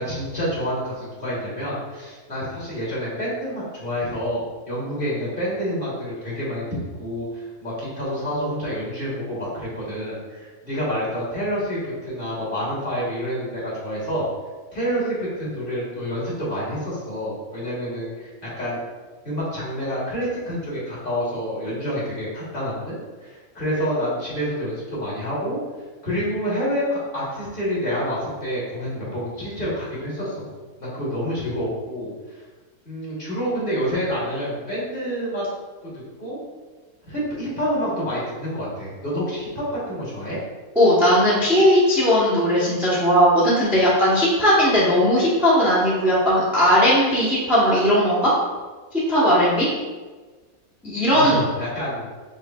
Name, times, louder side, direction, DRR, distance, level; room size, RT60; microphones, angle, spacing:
voice 1, 0.0-6.6 7.0-14.3 14.7-18.8 19.2-25.6 26.0-30.5 30.8-32.4 32.8-35.4 35.8-35.9 36.2-36.4 37.1-40.4 51.1-52.1, equal, 40° left, -7 dB, 1.4 m, -28 dB
voice 2, 40.7-48.3 49.1-49.7 50.8-51.4, equal, ahead, -8 dB, 0.7 m, -18 dB
5.4 x 3.1 x 2.3 m, 1.3 s
omnidirectional pair, 1.6 m